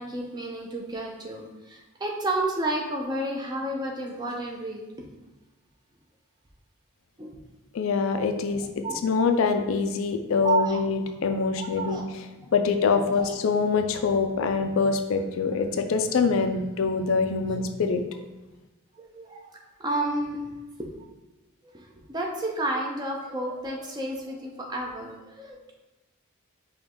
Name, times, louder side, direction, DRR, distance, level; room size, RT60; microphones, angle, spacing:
voice 1, 0.0-4.8 7.2-7.3 8.8-9.0 10.4-10.8 11.6-12.1 13.1-13.3 19.0-19.4 19.8-20.4 20.8-20.9 21.7-25.7, right 2 dB, 20° right, 0 dB, 0.5 m, -31 dB
voice 2, 7.7-12.0 12.5-18.0, left 5 dB, 75° left, 7 dB, 0.4 m, -24 dB
5.0 x 2.3 x 3.7 m, 1.1 s
head